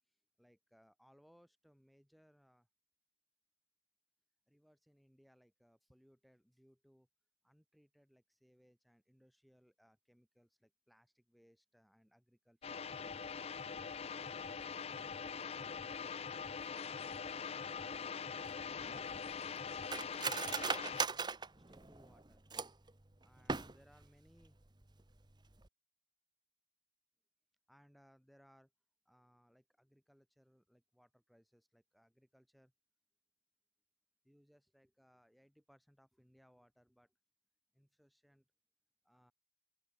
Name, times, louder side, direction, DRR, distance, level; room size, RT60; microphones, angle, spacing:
voice 1, 0.4-2.7 4.5-7.1 7.4-13.2 13.5-16.9 17.4-18.3 21.7-22.4 23.2-24.6 27.7-28.7 29.0-32.7 34.2-37.1 37.7-38.4 39.0-39.3, equal, ahead, 4.8 m, -69 dB
sound 1, 12.6-21.1, left 6 dB, 35° left, 0.4 m, -43 dB
Cutlery silverware, 18.4-22.9 23.4-24.1 24.4-24.5 24.8-25.2 25.5-25.7, right 5 dB, 25° right, 1.0 m, -39 dB
open air
head